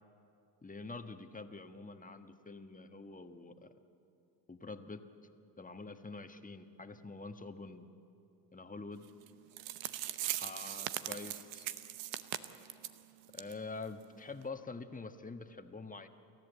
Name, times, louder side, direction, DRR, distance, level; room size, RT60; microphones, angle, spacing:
voice 1, 0.6-3.7 4.5-5.0 5.6-7.9 8.5-9.1 10.3-11.7 13.3-16.1, left 3 dB, 15° left, 7 dB, 1.4 m, -46 dB
sound 1, 9.3-9.4 9.6-13.0 13.3-13.5 13.8-13.9 14.4-14.5, right 14 dB, 85° right, 1.0 m, -39 dB
29.0 x 13.5 x 8.1 m, 2.8 s
supercardioid pair, 70°, 49 cm